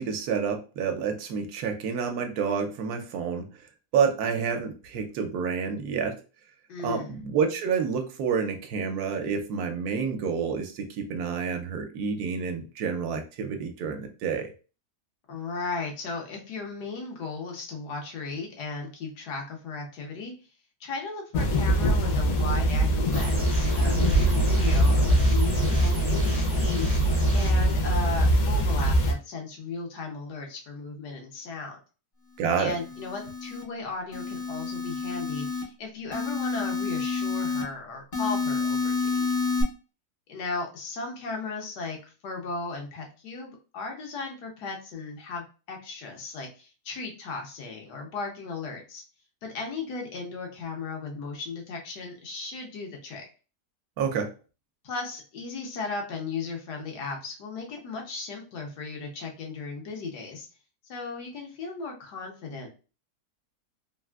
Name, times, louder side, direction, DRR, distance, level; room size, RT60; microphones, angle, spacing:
voice 1, 0.0-3.5 3.9-6.1 6.8-14.5 32.4-32.7 54.0-54.3, right 6 dB, 75° right, 5 dB, 1.1 m, -28 dB
voice 2, 6.7-7.2 15.3-20.3 20.8-26.9 27.3-31.8 32.6-39.3 40.3-49.0 49.4-53.2 54.8-60.5 60.9-62.7, left 4 dB, 85° left, 1 dB, 1.4 m, -36 dB
sound 1, 21.3-29.1, right 1 dB, 70° left, 1.1 m, -22 dB
sound 2, 23.1-27.5, right 1 dB, 15° right, 0.5 m, -35 dB
sound 3, 32.5-33.6 34.1-35.6 36.1-37.6 38.1-39.6, left 4 dB, 45° left, 0.7 m, -29 dB
3.4 x 2.5 x 2.3 m, 0.34 s
omnidirectional pair, 1.7 m